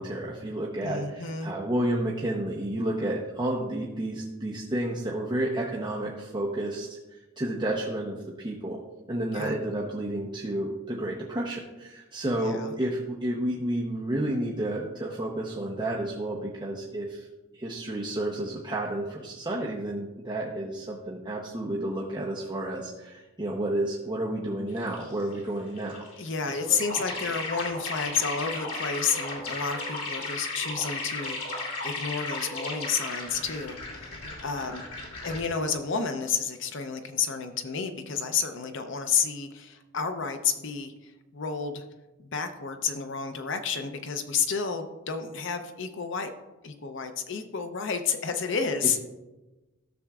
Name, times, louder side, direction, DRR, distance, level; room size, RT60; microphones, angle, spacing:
voice 1, 0.0-8.8 9.1-17.3 17.5-26.1 26.5-26.9, right 1 dB, 20° right, -4 dB, 0.8 m, -31 dB
voice 2, 0.8-1.5 9.3-9.6 12.4-12.7 26.2-34.9 35.2-41.8 42.2-46.3 46.6-49.0, left 6 dB, 60° left, 7 dB, 0.6 m, -31 dB
sound 1, 24.8-25.4 25.8-35.4, left 3 dB, 90° left, 2.6 m, -35 dB
13.0 x 7.0 x 2.4 m, 1.1 s
head